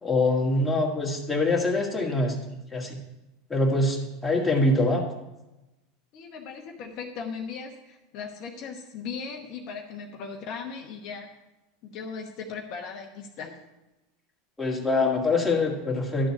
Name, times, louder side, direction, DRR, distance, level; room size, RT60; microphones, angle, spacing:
voice 1, 0.0-2.4 2.7-3.0 3.5-5.0 14.6-16.3, left 2 dB, 10° left, -2 dB, 1.9 m, -24 dB
voice 2, 6.1-11.4 11.8-13.6, left 5 dB, 55° left, 2 dB, 1.0 m, -38 dB
11.5 x 3.9 x 7.4 m, 1.0 s
hypercardioid pair, 100°, 0 cm